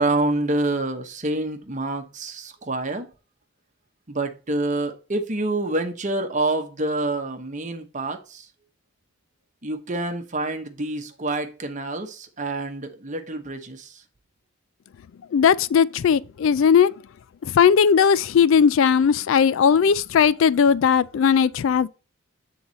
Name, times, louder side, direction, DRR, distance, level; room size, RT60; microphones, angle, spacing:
voice 1, 0.0-3.1 4.1-8.5 9.6-14.0, right 2 dB, 35° right, 1.0 m, -27 dB
voice 2, 15.3-16.9 17.4-21.9, left 7 dB, 65° left, 0.3 m, -18 dB
7.9 x 3.9 x 4.0 m
head